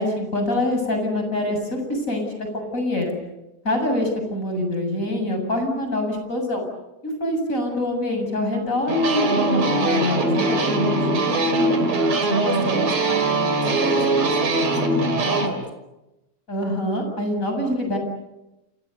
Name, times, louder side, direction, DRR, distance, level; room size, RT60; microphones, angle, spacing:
voice 1, 0.0-3.1 3.6-6.6 7.0-10.8 16.5-18.0, left 1 dB, 20° left, 4 dB, 7.7 m, -25 dB
sound 1, 8.9-15.5, right 2 dB, 50° right, 4.0 m, -21 dB
voice 2, 11.3-15.6, right 1 dB, 5° left, 4 dB, 5.9 m, -32 dB
30.0 x 27.5 x 6.8 m, 0.96 s
omnidirectional pair, 4.1 m